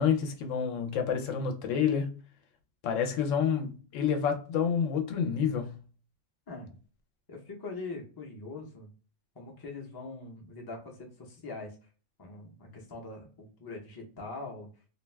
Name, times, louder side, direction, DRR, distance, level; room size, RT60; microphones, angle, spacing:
voice 1, 0.0-2.1 2.8-5.8, left 7 dB, 80° left, 1.0 m, -28 dB
voice 2, 7.3-8.9 9.3-11.8 12.2-14.7, left 3 dB, 25° left, 0.5 m, -42 dB
2.4 x 2.2 x 3.2 m
omnidirectional pair, 1.3 m